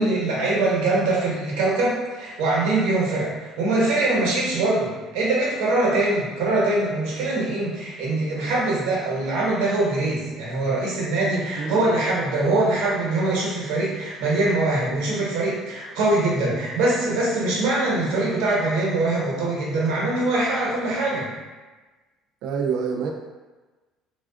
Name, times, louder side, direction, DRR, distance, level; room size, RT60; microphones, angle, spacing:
voice 1, 0.0-21.3, right 2 dB, 90° right, -5 dB, 1.0 m, -23 dB
voice 2, 22.4-23.1, right 6 dB, 70° right, 2 dB, 0.4 m, -26 dB
3.4 x 2.4 x 2.4 m, 1.2 s
cardioid pair, 145°, 0 cm